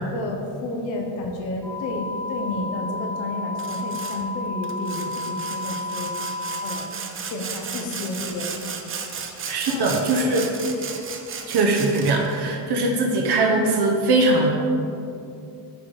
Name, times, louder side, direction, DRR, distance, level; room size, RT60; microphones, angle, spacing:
voice 1, 0.0-6.1 6.6-6.9 7.3-8.5 9.7-10.4, left 2 dB, 70° left, 2 dB, 1.2 m, -31 dB
sound 1, 1.6-6.8, left 2 dB, 5° left, 1.0 m, -31 dB
Sawing, 3.6-4.2 4.6-12.3, right 6 dB, 30° right, 0.5 m, -35 dB
voice 2, 9.5-10.4 11.5-14.5, right 2 dB, 60° right, 0 dB, 1.0 m, -21 dB
6.6 x 3.8 x 5.5 m, 2.6 s
cardioid pair, 115°, 46 cm